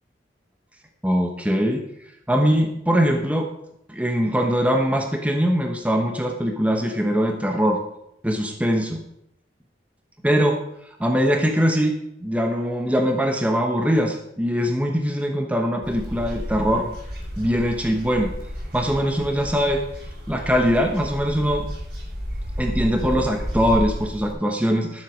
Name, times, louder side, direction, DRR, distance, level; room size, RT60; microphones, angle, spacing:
voice 1, 1.0-1.8 2.3-3.5 3.9-7.8 8.2-9.0 10.2-10.6 11.0-11.9 12.2-16.9 17.4-18.3 18.7-19.8 20.3-21.7 22.6-25.0, equal, 10° right, 3 dB, 0.9 m, -22 dB
sound 1, 15.8-24.3, equal, 65° right, 4.4 m, -32 dB
13.0 x 7.5 x 5.2 m, 0.80 s
head